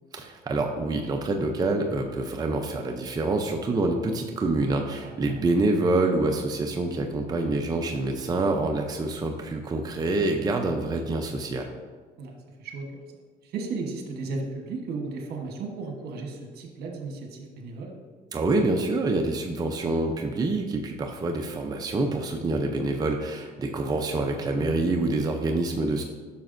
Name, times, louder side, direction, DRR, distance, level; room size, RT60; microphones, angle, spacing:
voice 1, 0.1-11.7 18.3-26.0, right 2 dB, 20° right, 2 dB, 0.6 m, -26 dB
voice 2, 12.2-12.9 13.4-17.9 24.5-24.7, right 3 dB, 70° right, 2 dB, 1.2 m, -35 dB
9.2 x 6.1 x 2.6 m, 1.5 s
cardioid pair, 110°, 17 cm